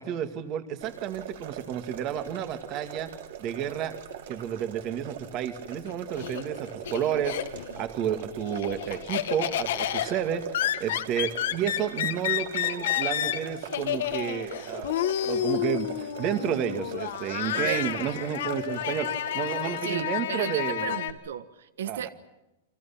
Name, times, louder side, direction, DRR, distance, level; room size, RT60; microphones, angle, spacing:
voice 1, 0.0-3.1 3.4-3.9 4.3-7.4 7.8-10.4 10.8-15.0 15.2-19.1 19.3-21.0 21.8-22.1, right 9 dB, 25° right, 2.0 m, -31 dB
sound 1, 0.8-20.0, right 9 dB, 55° right, 3.0 m, -42 dB
Laughter, 5.7-7.8 8.2-21.1, left 12 dB, 60° left, 1.9 m, -30 dB
voice 2, 17.6-17.9 19.8-22.1, right 10 dB, 80° right, 1.5 m, -34 dB
30.0 x 24.5 x 5.9 m
supercardioid pair, 170°, 0 cm